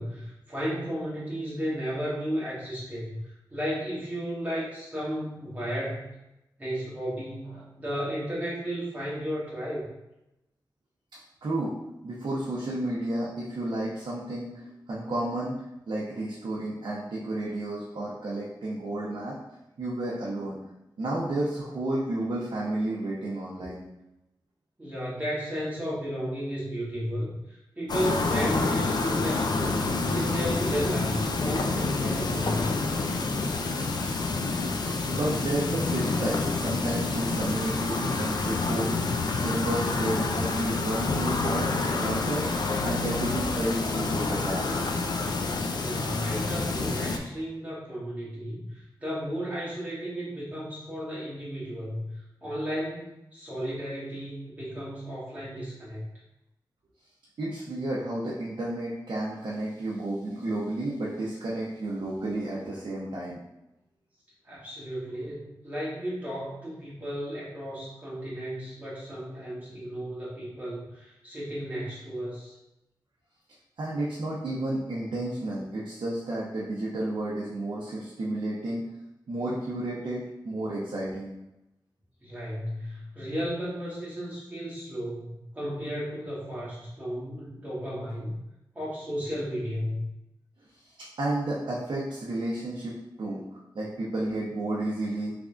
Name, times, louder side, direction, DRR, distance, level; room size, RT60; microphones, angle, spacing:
voice 1, 0.0-6.1 6.6-9.9 24.8-32.7 45.7-56.0 64.4-72.5 82.2-88.3 88.7-90.1, equal, 20° right, -8 dB, 1.5 m, -34 dB
voice 2, 11.4-11.8 12.0-15.6 15.9-19.4 19.8-20.6 21.0-23.8 35.1-38.9 39.4-44.8 57.4-63.4 73.8-78.9 79.3-81.3 91.2-95.3, right 1 dB, 70° right, -6 dB, 0.7 m, -31 dB
sound 1, 27.9-47.2, left 3 dB, 60° left, 0.4 m, -28 dB
3.7 x 3.3 x 2.4 m, 0.91 s
wide cardioid pair, 125°, 8 cm